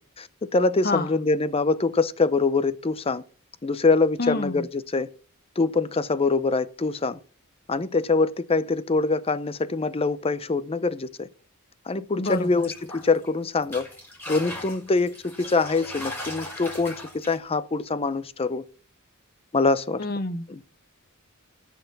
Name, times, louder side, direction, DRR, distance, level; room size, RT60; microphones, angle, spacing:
voice 1, 0.2-3.2 3.6-5.1 5.6-7.2 7.7-11.3 11.9-13.9 14.3-18.6 19.5-20.0 20.5-20.6, left 3 dB, 25° left, 0.6 m, -24 dB
voice 2, 4.2-4.6 12.2-12.7 20.0-20.5, left 3 dB, 45° left, 1.2 m, -28 dB
sound 1, 12.2-13.3 13.6-17.4, left 1 dB, 10° left, 3.8 m, -38 dB
14.0 x 6.0 x 7.0 m
head